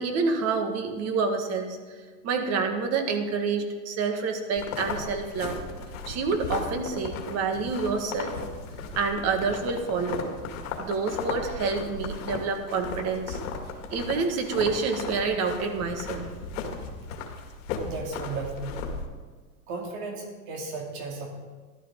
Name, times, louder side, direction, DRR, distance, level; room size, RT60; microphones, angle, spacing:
voice 1, 0.0-1.8 2.2-5.6 6.1-8.3 9.0-10.3 10.8-13.4 13.9-16.3, right 4 dB, 40° right, 5 dB, 1.7 m, -28 dB
sound 1, 4.6-19.1, left 4 dB, 65° left, 2.1 m, -36 dB
voice 2, 17.8-18.7 19.7-21.3, right 3 dB, 55° right, 0 dB, 2.6 m, -35 dB
14.5 x 12.0 x 3.7 m, 1.4 s
supercardioid pair, 130°, 41 cm